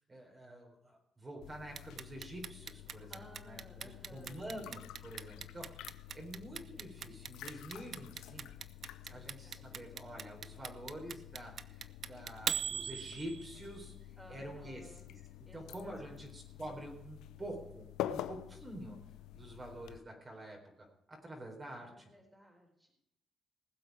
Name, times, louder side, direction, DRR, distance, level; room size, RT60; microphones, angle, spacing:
voice 1, 0.0-8.7 9.1-13.9 14.3-19.0 19.3-21.9, right 1 dB, 25° right, 0 dB, 4.1 m, -47 dB
sound 1, 1.4-20.0, left 12 dB, 90° left, 0.7 m, -48 dB
Clock, 1.8-13.7, right 7 dB, 55° right, 0.7 m, -40 dB
voice 2, 3.1-4.6 9.1-9.8 14.2-15.0 15.5-16.2 21.7-23.0, equal, 5° right, 2 dB, 4.2 m, -58 dB
19.5 x 7.9 x 4.8 m, 0.80 s
cardioid pair, 90°, 0 cm